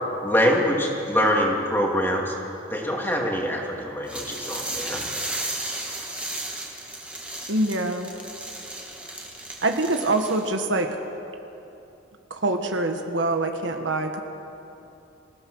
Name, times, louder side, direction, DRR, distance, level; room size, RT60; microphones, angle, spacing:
voice 1, 0.2-2.3 2.7-5.0, equal, 10° left, -1 dB, 2.6 m, -24 dB
sound 1, 4.1-10.6, right 1 dB, 5° right, 2.3 m, -34 dB
voice 2, 7.5-8.1 9.6-10.9 12.3-14.2, right 2 dB, 70° right, 5 dB, 1.5 m, -24 dB
27.0 x 16.5 x 6.4 m, 2.8 s
head